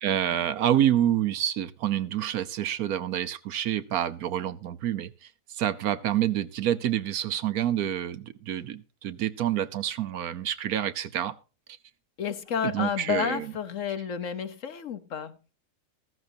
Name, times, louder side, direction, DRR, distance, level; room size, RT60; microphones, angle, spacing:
voice 1, 0.0-11.3 12.6-13.4, right 11 dB, 70° right, 1.2 m, -28 dB
voice 2, 12.2-15.3, left 7 dB, 60° left, 1.1 m, -31 dB
14.0 x 14.0 x 2.7 m
omnidirectional pair, 1.7 m